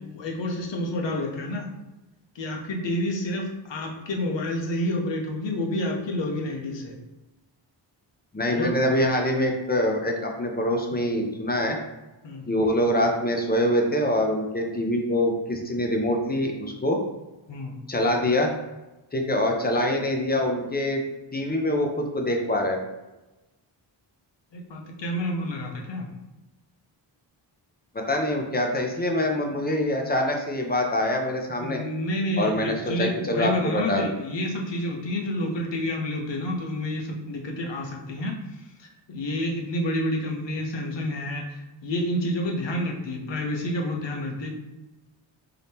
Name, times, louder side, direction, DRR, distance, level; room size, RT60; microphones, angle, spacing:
voice 1, 0.0-1.7 2.3-7.0 8.5-8.8 12.2-12.5 17.5-17.8 24.5-26.1 31.6-38.4 38.8-44.5, left 1 dB, 65° left, 1 dB, 0.9 m, -29 dB
voice 2, 8.3-11.8 12.5-17.0 17.9-18.5 19.1-21.0 21.3-22.8 27.9-31.8 32.4-34.2, left 1 dB, 20° left, 2 dB, 0.5 m, -24 dB
3.8 x 2.8 x 3.5 m, 1.0 s
wide cardioid pair, 140°, 46 cm